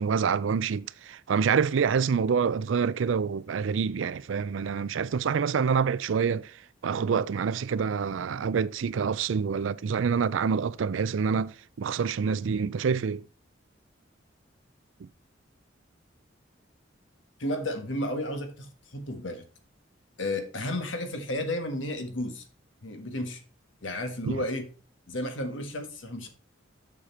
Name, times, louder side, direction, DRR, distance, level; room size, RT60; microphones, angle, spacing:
voice 1, 0.0-6.5 6.8-13.2 24.2-24.4, right 6 dB, 80° right, 0.4 m, -27 dB
voice 2, 17.4-19.4 20.2-22.4 22.8-23.4 23.8-24.7 25.1-26.3, left 1 dB, 75° left, 1.6 m, -32 dB
7.5 x 6.6 x 4.4 m
head